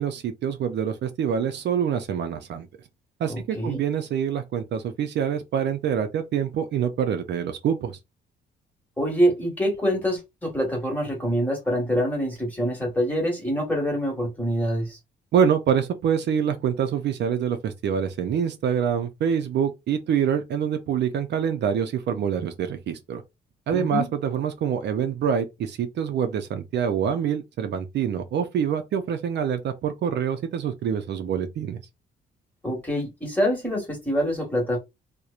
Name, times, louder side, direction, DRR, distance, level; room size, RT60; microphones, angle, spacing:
voice 1, 0.0-2.7 3.2-8.0 15.3-23.2 23.7-31.8, right 8 dB, 60° right, 0.4 m, -25 dB
voice 2, 3.3-3.8 9.0-15.0 23.7-24.1 32.6-34.8, equal, 10° left, 1.3 m, -25 dB
2.8 x 2.1 x 2.4 m
cardioid pair, 90°, 20 cm